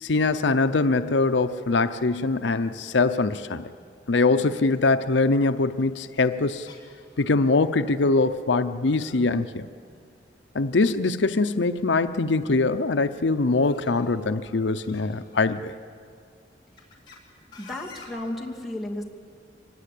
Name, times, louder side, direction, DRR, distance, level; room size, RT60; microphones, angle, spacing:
voice 1, 0.0-3.7 4.1-6.7 7.2-9.7 10.5-15.7, left 3 dB, 80° left, 10 dB, 0.7 m, -23 dB
sound 1, 5.8-6.0 6.7-7.4 7.6-7.7 8.0-8.1 8.3-8.8 9.9-10.0 10.7-11.8 12.1-12.4 13.6-15.7 16.4-17.2 17.5-18.1, left 4 dB, 25° left, 4.1 m, -49 dB
voice 2, 17.6-19.0, left 1 dB, ahead, 0 dB, 2.5 m, -33 dB
24.0 x 20.5 x 8.4 m, 2.3 s
head